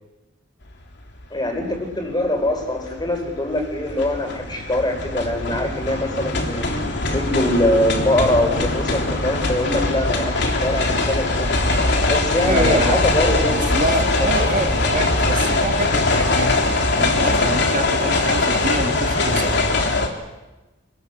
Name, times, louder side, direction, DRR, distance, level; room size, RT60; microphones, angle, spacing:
sound 1, 1.1-1.2 1.6-20.1, left 2 dB, 65° left, 3.6 m, -21 dB
voice 1, 1.3-6.7 7.1-11.5 12.1-13.7 14.2-14.5, left 1 dB, 25° left, 4 dB, 5.3 m, -23 dB
voice 2, 12.4-13.0 13.5-16.6 17.0-19.6, right 2 dB, 45° right, 4 dB, 2.1 m, -26 dB
27.5 x 20.0 x 8.1 m, 1.1 s
head